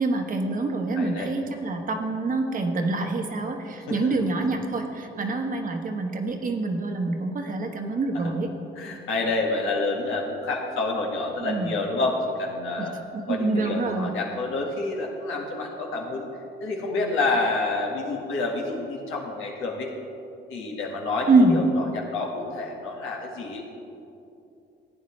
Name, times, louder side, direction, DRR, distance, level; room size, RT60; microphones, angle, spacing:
voice 1, 0.0-8.5 11.4-11.7 13.1-14.1 21.3-21.6, right 3 dB, 45° right, 4 dB, 1.2 m, -25 dB
voice 2, 1.0-1.3 3.9-4.1 4.3-4.4 8.1-8.3 8.8-12.9 13.3-16.3 16.6-19.9 20.5-23.6, left 3 dB, 90° left, -1 dB, 1.8 m, -28 dB
15.0 x 9.1 x 3.3 m, 2.7 s
cardioid pair, 90°, 20 cm